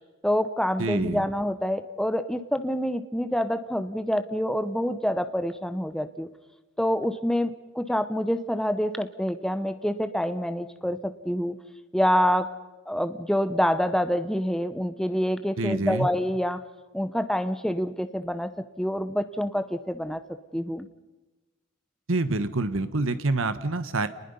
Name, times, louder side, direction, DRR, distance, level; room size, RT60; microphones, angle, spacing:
voice 1, 0.2-6.3 6.8-11.6 11.9-12.5 12.9-16.6 16.9-18.5 18.8-20.2 20.5-20.9, equal, 5° left, 9 dB, 0.8 m, -27 dB
voice 2, 0.8-1.3 15.6-16.1 22.1-24.1, right 2 dB, 85° right, 12 dB, 1.2 m, -27 dB
29.5 x 20.5 x 5.5 m, 1.2 s
head